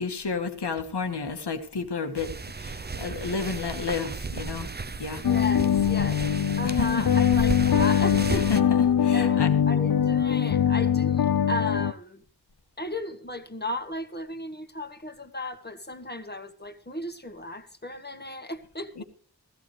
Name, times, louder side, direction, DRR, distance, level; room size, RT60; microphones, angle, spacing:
voice 1, 0.0-2.3 2.6-4.7 5.0-5.2 5.9-6.1 6.6-6.9 8.3-9.5 19.0-19.1, left 5 dB, 85° left, 1.6 m, -31 dB
sound 1, 2.2-8.6, right 4 dB, 25° right, 0.6 m, -34 dB
sound 2, 5.2-11.9, left 9 dB, 65° left, 0.5 m, -22 dB
voice 2, 5.2-6.2 6.6-8.5 9.1-12.2 12.8-18.9, left 1 dB, 25° left, 1.7 m, -35 dB
16.5 x 14.0 x 3.3 m
cardioid pair, 45°, 39 cm